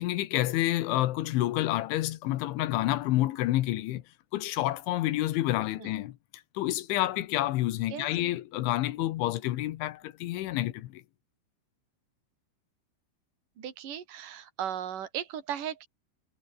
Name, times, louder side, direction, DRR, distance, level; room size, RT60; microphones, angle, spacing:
voice 1, 0.0-4.0 4.3-6.2 6.6-11.0, left 15 dB, 80° left, 3.5 m, -29 dB
voice 2, 7.9-8.3 13.6-15.9, right 9 dB, 45° right, 4.5 m, -37 dB
omnidirectional pair, 5.5 m